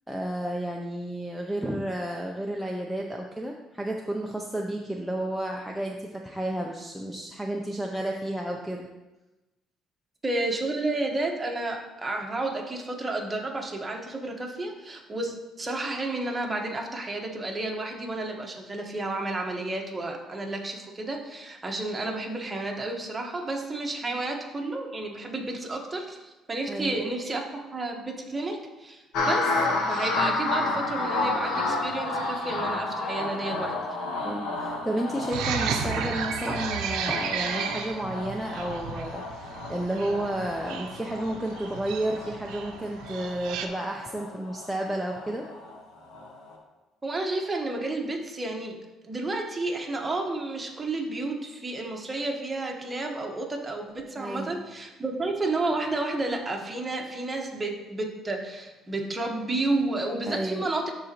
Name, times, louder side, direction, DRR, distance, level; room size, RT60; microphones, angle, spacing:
voice 1, 0.1-8.9 24.0-24.2 26.7-27.1 34.2-45.5 54.2-54.6 60.2-60.6, right 1 dB, ahead, -1 dB, 0.5 m, -32 dB
voice 2, 10.2-34.0 36.5-36.6 37.1-37.2 47.0-48.8 49.0-60.9, right 2 dB, 20° right, 1 dB, 1.2 m, -31 dB
sound 1, 29.1-45.8 46.1-46.6, left 2 dB, 80° left, 1.2 m, -31 dB
sound 2, 35.3-43.7, right 7 dB, 85° right, 0.6 m, -34 dB
11.5 x 3.9 x 2.9 m, 1.1 s
cardioid pair, 105°, 0 cm